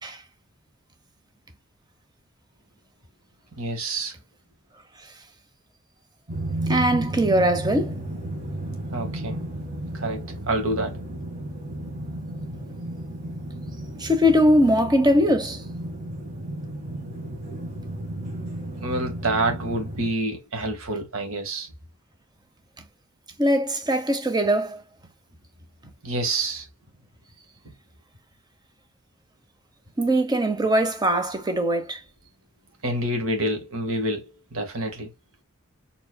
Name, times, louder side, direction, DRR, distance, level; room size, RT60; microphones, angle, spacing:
voice 1, 3.6-4.1 8.9-9.4 9.9-11.0 18.8-21.7 26.0-26.7 32.8-35.1, right 2 dB, 80° right, 1.8 m, -27 dB
sound 1, 6.3-20.1, right 1 dB, 35° right, 1.8 m, -33 dB
voice 2, 6.7-8.0 14.0-15.6 23.4-24.8 30.0-32.0, equal, 20° right, 0.9 m, -21 dB
4.6 x 3.8 x 2.3 m
head